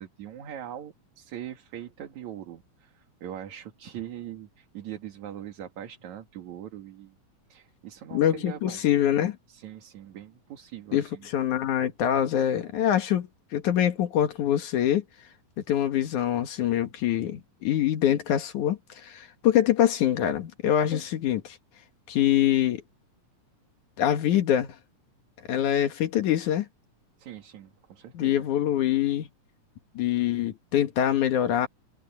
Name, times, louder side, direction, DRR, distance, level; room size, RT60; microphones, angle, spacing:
voice 1, 0.0-7.2 7.5-8.8 9.5-11.3 12.7-12.9 27.2-28.4, right 10 dB, 65° right, 3.1 m, -41 dB
voice 2, 8.1-9.4 10.9-15.0 15.7-21.6 22.1-22.8 24.0-24.8 25.5-26.7 28.1-29.3 30.0-31.7, left 11 dB, 70° left, 2.8 m, -24 dB
omnidirectional pair, 3.7 m